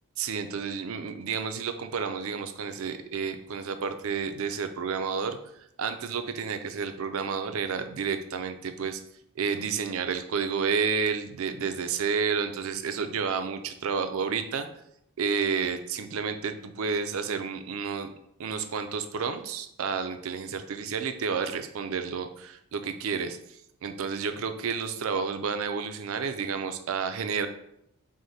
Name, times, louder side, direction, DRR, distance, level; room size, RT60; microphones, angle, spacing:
voice 1, 0.2-9.0 9.4-14.7 15.2-18.1 18.4-27.5, right 5 dB, 65° right, 9 dB, 0.4 m, -30 dB
4.8 x 2.1 x 4.0 m, 0.76 s
head